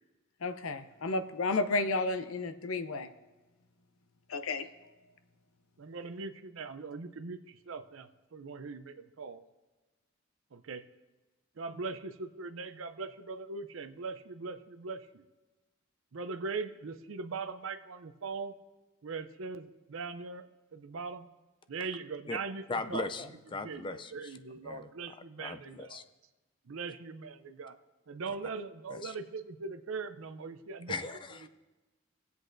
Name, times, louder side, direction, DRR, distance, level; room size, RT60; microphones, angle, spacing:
voice 1, 0.4-3.1 4.3-4.7, left 3 dB, 85° left, 11 dB, 0.6 m, -32 dB
voice 2, 5.8-7.4 7.7-9.4 10.5-10.8 11.6-15.0 16.1-18.5 19.0-20.4 20.7-21.3 21.7-22.6 22.9-23.1 23.6-26.0 26.7-27.7 28.1-30.9, right 4 dB, 70° right, 10 dB, 0.6 m, -40 dB
voice 3, 22.7-26.0 28.3-28.4 28.9-29.2 30.9-31.5, left 3 dB, 25° left, 10 dB, 0.4 m, -39 dB
19.5 x 8.0 x 2.6 m, 1.2 s
head